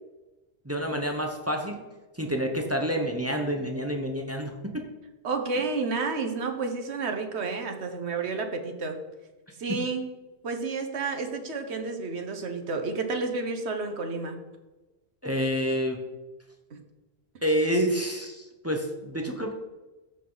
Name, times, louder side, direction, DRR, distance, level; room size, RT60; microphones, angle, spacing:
voice 1, 0.6-1.8 2.2-4.8 15.2-16.0 17.4-19.5, equal, 15° right, 3 dB, 1.0 m, -28 dB
voice 2, 5.2-9.0 9.6-10.0 10.4-14.4 16.7-16.8, right 4 dB, 80° right, 5 dB, 1.4 m, -30 dB
14.0 x 5.5 x 4.0 m, 1.1 s
omnidirectional pair, 1.1 m